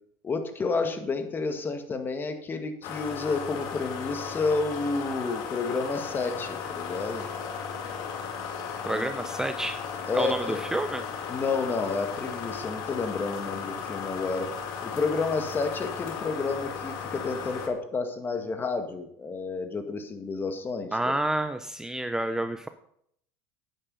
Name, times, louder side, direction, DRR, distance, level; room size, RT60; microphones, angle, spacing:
voice 1, 0.2-7.3 8.9-9.1 10.1-10.6 11.3-14.5 14.8-21.1, left 4 dB, 25° left, 7 dB, 1.9 m, -30 dB
sound 1, 2.8-17.7, left 6 dB, 60° left, 2.0 m, -36 dB
voice 2, 8.8-9.8 10.1-11.0 20.9-22.7, right 1 dB, 5° right, 9 dB, 0.7 m, -29 dB
9.7 x 9.1 x 5.6 m, 0.69 s
supercardioid pair, 100°, 8 cm